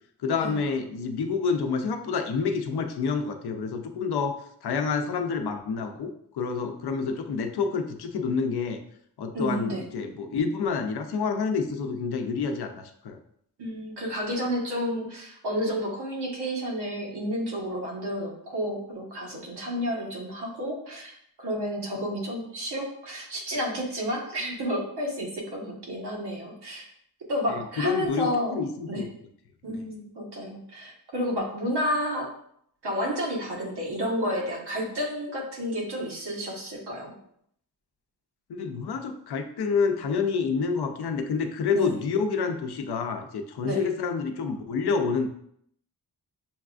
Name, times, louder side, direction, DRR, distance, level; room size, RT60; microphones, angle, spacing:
voice 1, 0.2-8.8 9.2-13.2 27.5-29.1 29.7-29.8 38.5-45.3, left 5 dB, 75° left, 6 dB, 0.6 m, -28 dB
voice 2, 9.3-9.9 13.6-21.1 21.4-26.9 27.3-28.6 28.9-29.0 29.6-32.3 32.8-37.1 41.7-42.0 43.6-43.9, equal, 80° right, -2 dB, 1.3 m, -31 dB
7.0 x 2.4 x 2.4 m, 0.69 s
wide cardioid pair, 150°, 39 cm